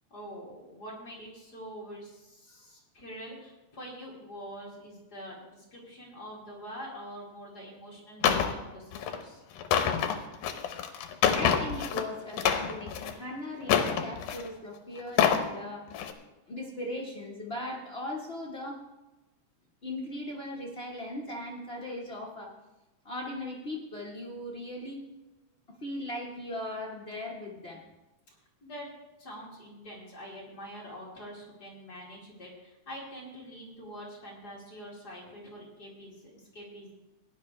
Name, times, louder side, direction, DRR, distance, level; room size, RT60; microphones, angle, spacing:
voice 1, 0.1-9.4 28.6-28.9 29.2-36.9, equal, 30° left, -4 dB, 3.2 m, -45 dB
sound 1, 8.2-8.5 8.9-9.2 9.6-12.0 12.3-13.1 13.6-14.5 15.0-15.5 15.9-16.1, left 8 dB, 80° left, 2.3 m, -26 dB
voice 2, 11.3-15.9 16.5-18.8 19.8-22.5 23.0-25.0 25.8-27.8, left 1 dB, 60° left, -3 dB, 0.6 m, -38 dB
17.5 x 10.5 x 3.3 m, 1.0 s
omnidirectional pair, 3.5 m